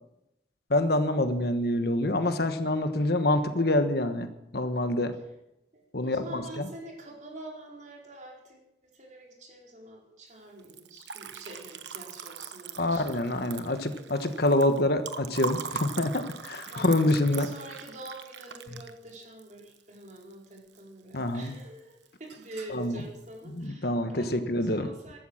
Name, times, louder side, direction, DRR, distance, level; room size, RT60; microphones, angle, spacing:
voice 1, 0.7-5.2 5.9-6.7 12.8-17.5 21.1-21.5 22.7-22.9 23.5-24.9, left 1 dB, 60° left, 9 dB, 1.3 m, -26 dB
voice 2, 5.7-8.6 8.9-13.6 16.7-25.2, right 2 dB, 45° right, -1 dB, 4.8 m, -46 dB
Liquid, 10.6-20.8 21.1-21.8 22.0-22.8, right 6 dB, 75° right, 1.1 m, -41 dB
15.0 x 13.0 x 6.5 m, 0.88 s
head